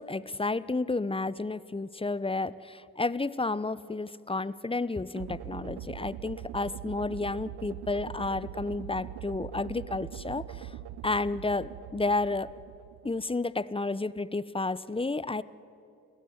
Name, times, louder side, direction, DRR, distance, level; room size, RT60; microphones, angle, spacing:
voice 1, 0.0-10.7 11.0-12.5 13.0-15.4, left 3 dB, 15° left, 18 dB, 0.8 m, -31 dB
sound 1, 5.1-13.3, right 11 dB, 65° right, 0.8 m, -42 dB
28.0 x 16.0 x 9.5 m, 2.7 s
hypercardioid pair, 40°, 42 cm